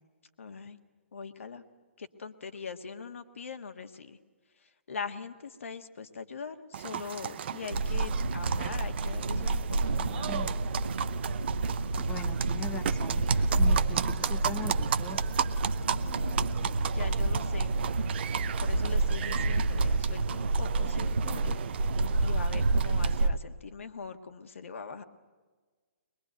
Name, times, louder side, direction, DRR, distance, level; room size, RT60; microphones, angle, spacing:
voice 1, 0.4-0.8 1.1-1.6 2.0-4.2 4.6-10.3 15.8-17.7 18.6-21.6 22.2-25.0, left 5 dB, 75° left, 7 dB, 1.6 m, -42 dB
sound 1, 6.7-23.3, right 9 dB, 50° right, 0.8 m, -36 dB
sound 2, 7.7-23.4, right 2 dB, 90° right, 0.8 m, -29 dB
voice 2, 10.2-10.6 12.0-15.2, left 4 dB, 10° left, 6 dB, 0.9 m, -41 dB
22.0 x 21.5 x 9.3 m, 1.4 s
hypercardioid pair, 135°, 7 cm